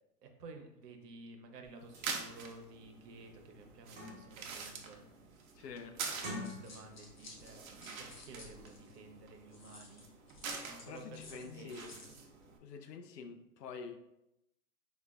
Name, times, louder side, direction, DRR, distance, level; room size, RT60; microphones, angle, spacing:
voice 1, 0.2-5.0 6.1-10.1 10.6-12.1, right 3 dB, 90° right, 5 dB, 0.8 m, -53 dB
sound 1, 1.6-1.7 1.9-2.1 2.7-2.8 3.2-4.5 4.9-5.3 6.1-7.1 7.4-7.6, left 1 dB, 40° right, 1.1 m, -46 dB
sound 2, 1.8-12.6, right 5 dB, 60° right, 0.7 m, -46 dB
voice 2, 5.5-6.0 10.9-11.8 12.6-14.0, left 5 dB, 85° left, 7 dB, 0.7 m, -47 dB
sound 3, 6.4-9.0 9.5-12.2, left 3 dB, 35° left, 0.4 m, -55 dB
4.9 x 2.2 x 2.4 m, 0.86 s
hypercardioid pair, 155°, 47 cm